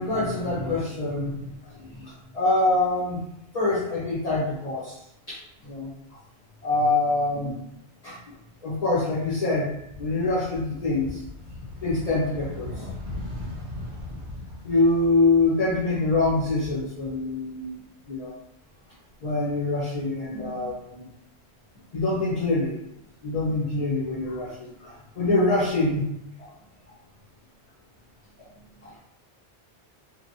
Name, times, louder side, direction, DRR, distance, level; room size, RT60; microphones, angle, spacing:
voice 1, 0.0-3.2 3.5-5.0 5.3-5.9 6.6-7.6 8.0-8.4 8.6-9.7 10.0-11.2 11.8-12.9 14.6-17.8 18.1-18.3 19.2-21.1 21.9-22.8 23.2-26.0 26.4-26.5 28.8-29.0, left 2 dB, 40° left, -8 dB, 0.7 m, -25 dB
sound 1, 9.6-17.6 18.0-19.1, left 2 dB, 50° right, 0.8 m, -39 dB
2.9 x 2.2 x 2.6 m, 0.79 s
omnidirectional pair, 1.2 m